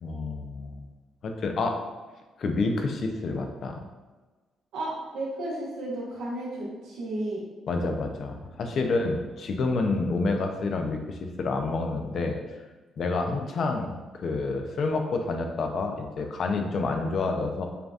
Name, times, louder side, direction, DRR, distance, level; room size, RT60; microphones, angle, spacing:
voice 1, 0.0-0.9 1.2-1.8 2.4-3.8 7.7-12.4 13.0-13.9 14.2-17.7, left 3 dB, 60° left, 4 dB, 0.6 m, -28 dB
voice 2, 4.7-7.4, right 1 dB, 90° right, -5 dB, 1.4 m, -33 dB
6.7 x 2.6 x 2.4 m, 1.3 s
cardioid pair, 90°, 0 cm